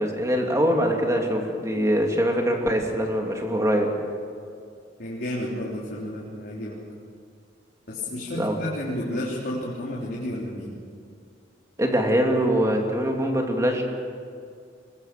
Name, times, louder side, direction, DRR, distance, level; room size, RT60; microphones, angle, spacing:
voice 1, 0.0-3.9 8.4-8.6 11.8-13.8, equal, 15° right, 1 dB, 2.8 m, -23 dB
voice 2, 5.0-6.8 7.9-10.8, left 1 dB, 55° left, -6 dB, 3.6 m, -31 dB
25.0 x 21.0 x 6.9 m, 2.3 s
head